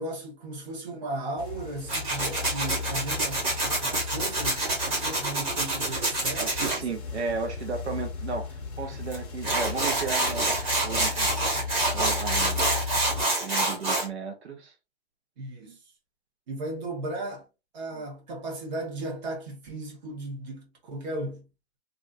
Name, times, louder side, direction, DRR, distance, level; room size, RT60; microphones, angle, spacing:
voice 1, 0.0-7.0 15.4-15.8 16.5-17.4 17.7-21.4, right 2 dB, 40° right, 1.6 m, -36 dB
sound 1, 1.4-13.2, left 5 dB, 15° left, 0.7 m, -36 dB
Tools, 1.9-6.8 9.1-9.2 9.4-14.1, right 2 dB, 20° right, 1.3 m, -27 dB
voice 2, 6.4-11.4 11.9-12.6 13.4-14.7 17.9-18.0, right 4 dB, 85° right, 1.0 m, -34 dB
3.2 x 2.6 x 2.8 m
hypercardioid pair, 155°, 32 cm